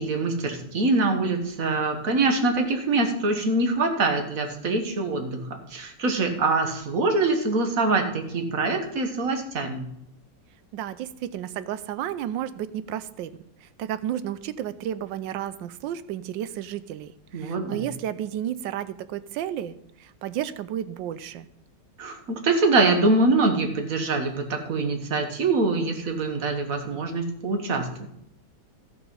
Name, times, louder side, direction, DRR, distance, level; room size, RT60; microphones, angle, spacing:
voice 1, 0.0-9.9 17.3-17.8 22.0-28.1, right 3 dB, 50° right, 5 dB, 1.6 m, -24 dB
voice 2, 10.7-13.3 13.6-19.7 20.0-21.5, right 11 dB, 85° right, 14 dB, 1.3 m, -32 dB
13.0 x 6.2 x 5.5 m, 0.77 s
omnidirectional pair, 2.0 m